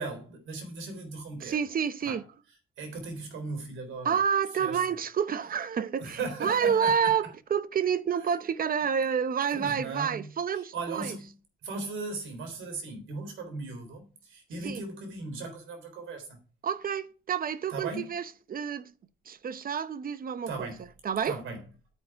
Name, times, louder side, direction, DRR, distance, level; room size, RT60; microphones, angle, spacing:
voice 1, 0.0-1.6 2.0-2.2 2.8-4.2 4.6-4.8 6.0-7.1 9.5-11.3 11.6-16.4 17.7-18.1 20.5-20.8 21.2-21.6, right 3 dB, 80° right, 3.8 m, -37 dB
voice 2, 1.4-2.2 4.0-11.1 14.6-14.8 16.6-18.2 18.5-18.9 19.3-20.7 21.0-21.3, right 7 dB, 45° right, 0.8 m, -29 dB
9.5 x 8.3 x 4.7 m
cardioid pair, 90°, 20 cm